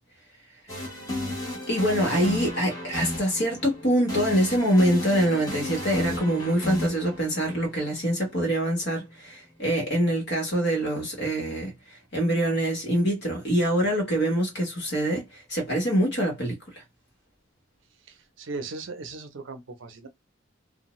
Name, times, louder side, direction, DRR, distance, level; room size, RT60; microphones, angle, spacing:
sound 1, 0.7-8.6, left 1 dB, 15° left, 0.9 m, -34 dB
voice 1, 1.7-11.7 12.1-16.6, equal, 55° left, 1.2 m, -25 dB
voice 2, 18.1-20.1, right 3 dB, 70° right, 0.6 m, -38 dB
2.6 x 2.1 x 3.0 m
head